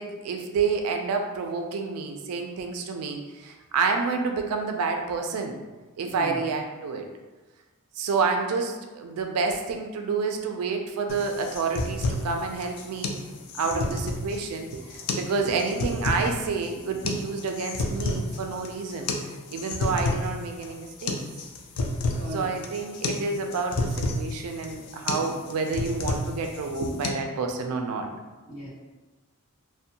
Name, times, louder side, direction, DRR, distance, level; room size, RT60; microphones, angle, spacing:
voice 1, 0.0-5.6 6.0-7.1 8.0-13.2 13.6-14.8 15.1-19.1 19.5-21.2 22.3-28.1, right 4 dB, 80° right, 4 dB, 0.3 m, -29 dB
voice 2, 6.0-6.4 13.4-13.9 22.1-22.5 28.4-28.7, right 2 dB, 40° left, -10 dB, 1.3 m, -37 dB
sound 1, 11.1-27.1, left 2 dB, 90° left, 0.4 m, -31 dB
2.5 x 2.1 x 2.7 m, 1.2 s
head